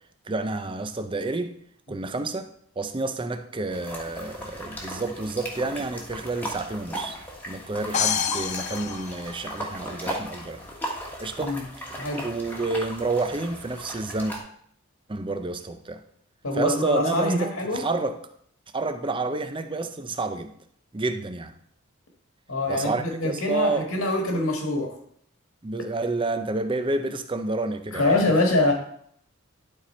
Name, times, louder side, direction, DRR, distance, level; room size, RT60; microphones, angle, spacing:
voice 1, 0.3-1.5 1.9-2.5 2.8-7.2 7.5-10.6 11.2-11.6 12.2-14.4 15.1-16.0 16.6-18.2 18.7-20.5 20.9-21.5 22.7-23.8 25.6-28.1, right 2 dB, 20° right, 0.5 m, -29 dB
sound 1, 3.7-14.4, equal, 10° left, 1.3 m, -37 dB
sound 2, 7.9-9.9, left 7 dB, 30° left, 0.4 m, -28 dB
voice 2, 16.4-17.8 22.5-25.0 27.9-28.7, left 2 dB, 80° left, 1.6 m, -24 dB
11.5 x 4.3 x 4.3 m
head